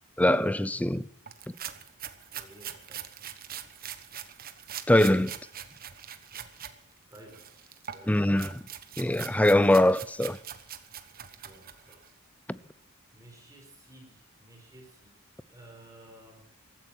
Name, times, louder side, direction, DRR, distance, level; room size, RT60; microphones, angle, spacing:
voice 1, 0.2-1.0 4.9-5.3 8.1-8.6 9.0-10.4 12.5-12.6, left 1 dB, 5° left, 0.5 m, -22 dB
sound 1, 1.3-6.7 7.1-12.1, right 9 dB, 45° right, 1.3 m, -43 dB
voice 2, 2.3-3.1 7.1-7.4 7.9-8.2 11.4-12.1 13.1-16.4, right 1 dB, 15° right, 5.0 m, -53 dB
15.5 x 14.0 x 6.2 m
head